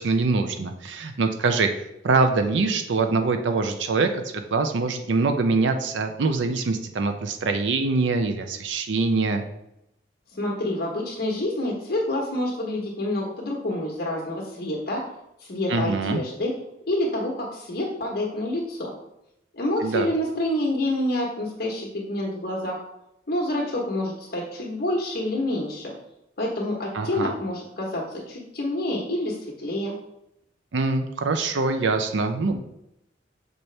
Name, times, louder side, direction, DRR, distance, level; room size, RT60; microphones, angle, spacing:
voice 1, 0.0-1.8 2.0-9.4 15.7-16.2 19.8-20.1 26.9-27.3 30.7-32.6, right 3 dB, 75° right, 7 dB, 0.5 m, -24 dB
voice 2, 10.3-15.1 15.4-16.5 16.9-18.9 19.5-22.8 23.3-25.9 26.4-29.9, left 1 dB, 55° left, -2 dB, 1.1 m, -27 dB
6.6 x 4.4 x 3.3 m, 0.83 s
head